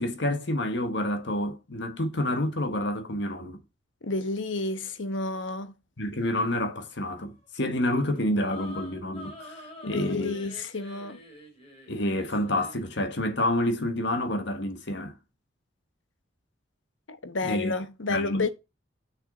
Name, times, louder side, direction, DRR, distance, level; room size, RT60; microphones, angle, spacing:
voice 1, 0.0-3.6 6.0-10.3 11.9-15.1 17.4-17.7 18.1-18.4, left 1 dB, 65° left, 1.4 m, -28 dB
voice 2, 4.0-5.7 9.8-11.2 17.1-18.5, left 3 dB, 85° left, 1.0 m, -30 dB
sound 1, 7.6-12.9, left 1 dB, 30° left, 2.9 m, -46 dB
6.3 x 6.2 x 3.9 m
head